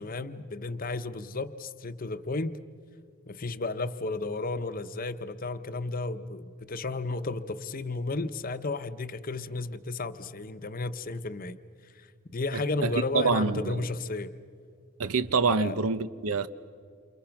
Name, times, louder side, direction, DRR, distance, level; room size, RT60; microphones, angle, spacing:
voice 1, 0.0-2.6 3.3-11.6 12.0-14.3 15.5-15.7, left 3 dB, 40° left, 11 dB, 0.8 m, -33 dB
voice 2, 12.5-13.9 15.0-16.5, right 4 dB, 85° right, 13 dB, 0.9 m, -27 dB
29.0 x 28.5 x 5.9 m, 2.1 s
head